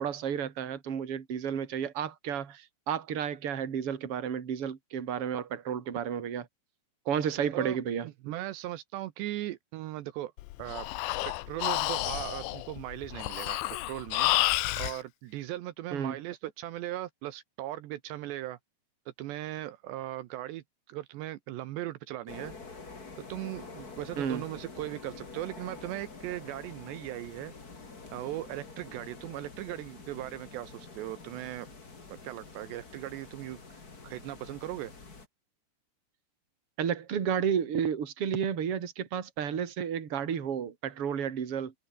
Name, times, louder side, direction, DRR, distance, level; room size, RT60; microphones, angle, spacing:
voice 1, 0.0-6.5 7.1-8.1 15.9-16.2 24.2-24.4 36.8-41.7, right 8 dB, 35° right, 3.0 m, -32 dB
voice 2, 7.5-10.3 10.6-10.9 11.3-13.6 13.9-18.6 19.2-22.5 23.3-27.5 28.1-31.7 32.2-34.9, right 14 dB, 80° right, 3.2 m, -38 dB
Breathing, 10.4-15.0, left 18 dB, 90° left, 3.2 m, -30 dB
sound 1, 22.3-35.3, left 4 dB, 25° left, 2.9 m, -47 dB
omnidirectional pair, 5.1 m